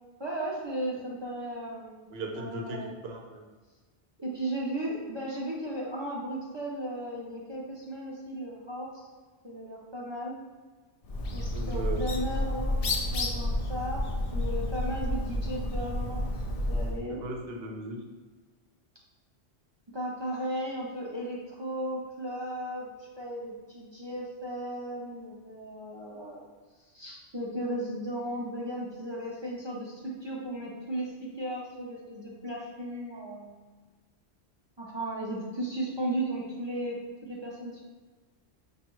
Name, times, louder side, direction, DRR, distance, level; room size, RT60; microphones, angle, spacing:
voice 1, 0.2-2.1 2.4-2.9 4.2-9.1 9.4-10.3 11.2-14.0 14.3-16.3 16.7-17.2 19.9-26.4 26.9-33.6 34.8-37.8, right 1 dB, 35° right, -4 dB, 0.4 m, -35 dB
voice 2, 2.1-3.5 11.5-12.1 17.1-18.0, right 2 dB, 65° right, 2 dB, 0.8 m, -37 dB
Bird, 11.0-17.0, left 1 dB, 55° left, 0.4 m, -30 dB
5.2 x 2.3 x 3.0 m, 1.4 s
omnidirectional pair, 1.2 m